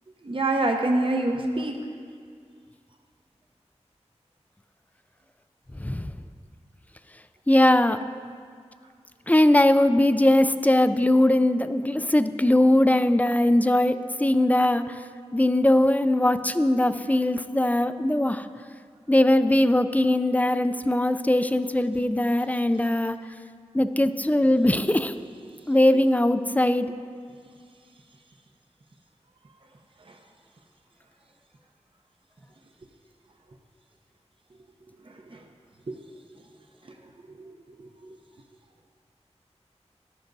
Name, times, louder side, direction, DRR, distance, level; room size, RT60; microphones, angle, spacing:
voice 1, 0.2-1.7 35.9-36.0, right 2 dB, 50° right, 3 dB, 0.8 m, -24 dB
voice 2, 5.8-6.1 7.5-8.0 9.3-15.0 15.3-18.5 19.1-23.2 23.7-25.1 25.7-26.9, left 1 dB, 15° left, 11 dB, 0.4 m, -21 dB
14.0 x 11.5 x 2.7 m, 2.1 s
wide cardioid pair, 65°, 12 cm